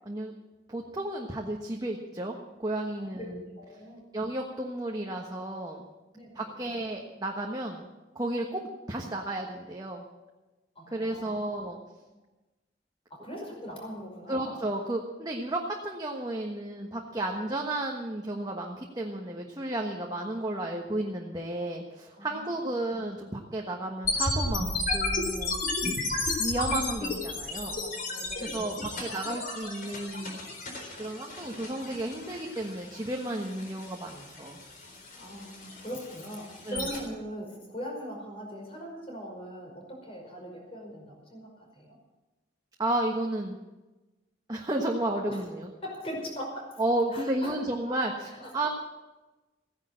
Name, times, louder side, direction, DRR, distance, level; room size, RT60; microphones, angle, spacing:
voice 1, 0.7-3.4 4.1-5.9 6.3-8.6 8.9-10.0 10.9-11.8 14.3-25.6 26.4-27.8 28.4-30.4 31.0-34.6 36.6-36.9 42.8-43.6 44.5-45.7 46.8-48.7, right 1 dB, 20° right, 0 dB, 1.4 m, -33 dB
voice 2, 3.0-3.3 3.6-4.0 6.1-6.5 10.8-11.6 13.1-14.6 17.4-17.5 22.2-22.6 27.1-27.2 27.5-29.2 35.2-42.0 45.3-45.4 45.8-46.8 47.1-47.5 48.4-48.5, equal, 35° left, 0 dB, 5.3 m, -41 dB
sound 1, 24.0-37.0, left 2 dB, 50° left, 4.1 m, -33 dB
15.5 x 10.5 x 7.6 m, 1.1 s
head